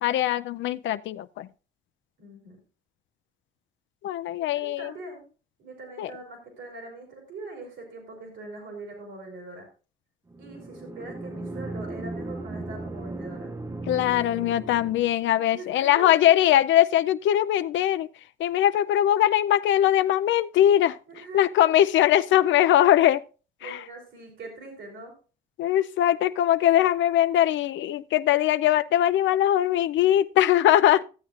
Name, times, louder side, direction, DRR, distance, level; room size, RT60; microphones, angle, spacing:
voice 1, 0.0-1.5 4.0-4.9 6.0-6.1 13.9-18.1 18.4-21.0 21.3-23.2 23.6-23.8 25.6-31.0, left 12 dB, 70° left, 0.4 m, -21 dB
voice 2, 2.2-2.6 4.6-5.3 5.6-9.7 10.4-13.5 15.5-16.3 21.1-21.5 23.6-25.1 30.9-31.0, right 2 dB, 70° right, 3.6 m, -42 dB
sound 1, 10.3-15.3, right 2 dB, 15° right, 0.6 m, -37 dB
14.5 x 7.8 x 2.5 m
cardioid pair, 90°, 20 cm